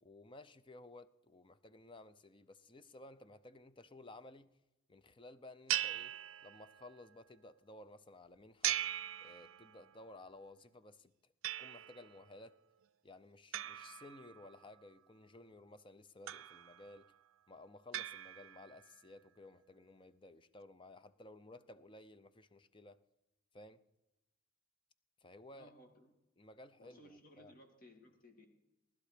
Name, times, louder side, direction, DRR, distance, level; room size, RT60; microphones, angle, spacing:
voice 1, 0.0-4.5 4.9-6.2 6.4-8.8 9.2-11.3 11.6-12.6 13.0-17.1 17.5-23.0 23.5-23.8 25.2-25.7 26.4-27.5, left 2 dB, 25° left, 0.5 m, -56 dB
sound 1, 5.7-6.9 8.6-9.9 11.4-12.2 13.5-14.7 16.3-17.0 17.9-18.8, right 13 dB, 65° right, 0.5 m, -40 dB
voice 2, 25.5-26.1 26.8-28.5, equal, 40° left, 2.3 m, -60 dB
19.0 x 12.0 x 5.1 m
head